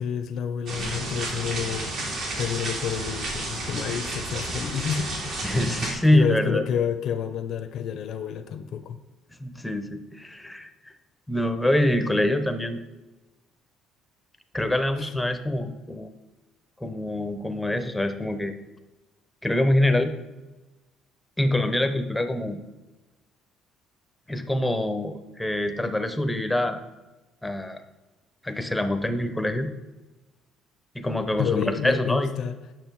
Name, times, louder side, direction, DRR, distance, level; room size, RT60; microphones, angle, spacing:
voice 1, 0.0-5.1 5.8-9.0 15.0-15.1 31.4-32.6, left 8 dB, 55° left, 8 dB, 0.7 m, -29 dB
sound 1, 0.7-5.9, right 2 dB, 60° right, 2.6 m, -31 dB
voice 2, 5.4-6.6 9.4-10.7 11.3-12.8 14.5-16.1 16.8-18.5 19.4-20.1 21.4-22.6 24.3-26.8 27.4-27.8 28.4-29.7 30.9-32.3, left 1 dB, 5° left, 8 dB, 0.7 m, -25 dB
8.9 x 6.1 x 4.6 m, 1.1 s
cardioid pair, 125°, 0 cm